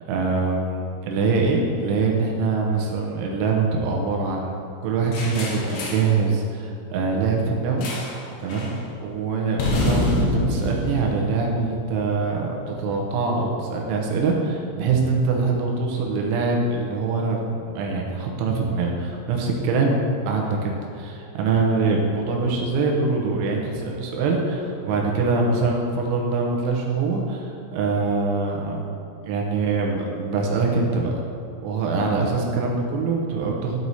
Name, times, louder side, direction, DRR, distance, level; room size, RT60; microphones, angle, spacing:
voice 1, 0.1-4.5 4.8-7.9 8.4-8.8 9.0-28.9 29.2-31.1 31.6-33.9, right 4 dB, 75° right, 0 dB, 3.1 m, -24 dB
sound 1, 5.1-6.1 7.8-8.2 8.5-8.8 9.6-11.9, left 1 dB, 70° left, 2.5 m, -26 dB
12.5 x 4.7 x 4.1 m, 2.4 s
omnidirectional pair, 6.0 m